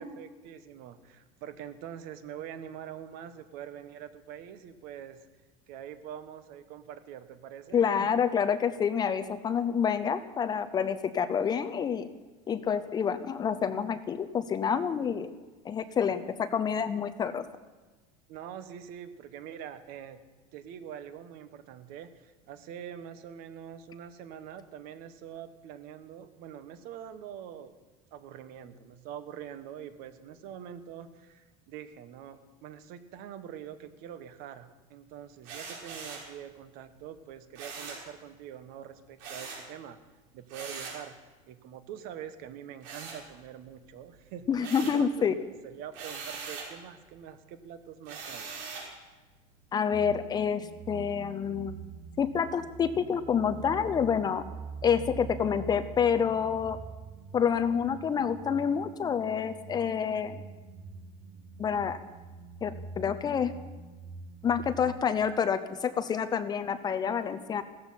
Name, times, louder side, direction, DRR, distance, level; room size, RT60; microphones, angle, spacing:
voice 1, 0.0-5.2 5.7-8.1 15.9-16.3 18.3-20.2 20.5-27.7 28.1-40.0 40.3-41.2 41.5-44.5 44.8-48.5, right 9 dB, 55° right, 11 dB, 1.3 m, -44 dB
voice 2, 7.7-12.1 12.5-15.3 15.6-17.4 44.5-45.3 49.7-51.8 52.2-54.4 54.8-56.8 57.3-60.4 61.6-62.0 62.6-63.5 64.4-67.6, left 7 dB, 25° left, 12 dB, 0.7 m, -28 dB
sound 1, 35.4-36.3 37.5-38.1 39.2-39.7 40.5-41.0 42.8-43.7 44.1-45.1 45.9-46.7 48.0-48.9, right 5 dB, 75° right, 6.4 m, -41 dB
sound 2, 49.9-65.0, right 5 dB, 35° right, 1.0 m, -45 dB
16.5 x 14.0 x 5.8 m, 1.2 s
cardioid pair, 155°, 18 cm